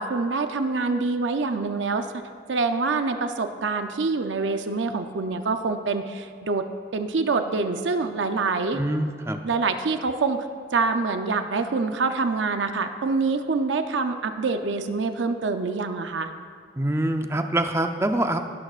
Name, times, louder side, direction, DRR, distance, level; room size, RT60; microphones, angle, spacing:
voice 1, 0.0-2.1 2.5-6.7 6.9-8.8 9.4-10.4 10.7-16.3, right 4 dB, 90° right, 7 dB, 0.6 m, -25 dB
voice 2, 8.7-9.4 16.8-18.5, right 1 dB, 15° right, 5 dB, 0.5 m, -25 dB
17.5 x 11.5 x 2.5 m, 2.1 s
head